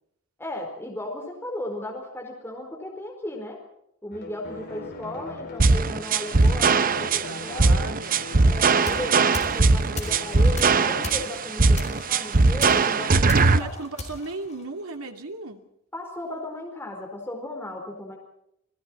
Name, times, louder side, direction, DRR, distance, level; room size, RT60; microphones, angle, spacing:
voice 1, 0.4-3.6 4.0-7.9 8.4-13.7 15.9-18.2, left 1 dB, 10° left, 0 dB, 4.5 m, -36 dB
sound 1, 4.1-11.3, left 2 dB, 50° left, 5.2 m, -41 dB
voice 2, 4.5-5.1 6.8-9.1 13.2-15.6, right 2 dB, 90° right, 4 dB, 2.8 m, -38 dB
sound 2, 5.6-13.6, right 3 dB, 40° right, 0.8 m, -20 dB
sound 3, 8.5-15.1, left 2 dB, 35° left, 5.3 m, -38 dB
30.0 x 20.5 x 4.6 m, 0.77 s
head